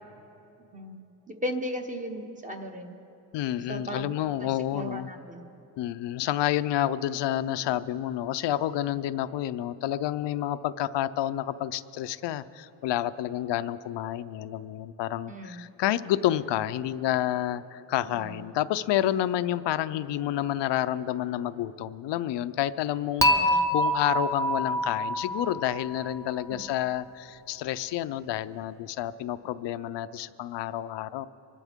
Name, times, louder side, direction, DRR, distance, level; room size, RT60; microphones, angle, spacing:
voice 1, 1.3-2.9 3.7-4.1 4.4-5.4 15.3-15.6 18.1-18.4 23.2-23.6 26.5-26.6, equal, 20° right, 4 dB, 1.1 m, -36 dB
voice 2, 3.3-5.1 5.8-31.3, left 12 dB, 80° left, 12 dB, 0.5 m, -29 dB
Dishes pots and pans / Chink clink, 23.2-26.4, equal, 5° left, 0.7 m, -26 dB
25.0 x 11.5 x 3.6 m, 3.0 s
cardioid pair, 120°, 42 cm